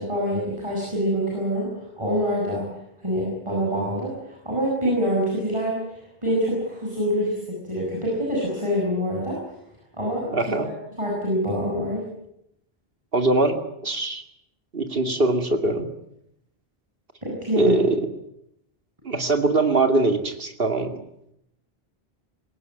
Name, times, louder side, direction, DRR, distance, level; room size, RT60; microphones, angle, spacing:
voice 1, 0.0-2.7 3.0-5.8 6.2-9.4 9.9-10.5 11.0-12.1 17.2-17.8, equal, 30° right, -3 dB, 7.3 m, -25 dB
voice 2, 10.3-10.7 13.1-14.2 14.7-15.9 17.5-18.1 19.0-21.0, right 2 dB, 65° right, 6 dB, 2.6 m, -22 dB
22.0 x 18.0 x 9.6 m, 0.79 s
omnidirectional pair, 1.0 m